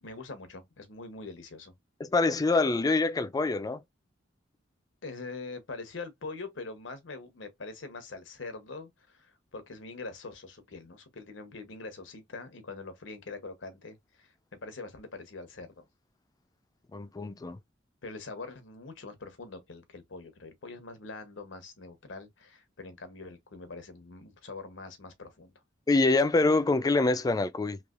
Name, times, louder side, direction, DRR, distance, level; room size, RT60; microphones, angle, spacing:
voice 1, 0.0-1.7 5.0-15.8 18.0-25.5, left 3 dB, 90° left, 0.9 m, -43 dB
voice 2, 2.0-3.8 16.9-17.6 25.9-27.8, left 3 dB, 20° left, 0.3 m, -25 dB
3.2 x 2.9 x 2.4 m
head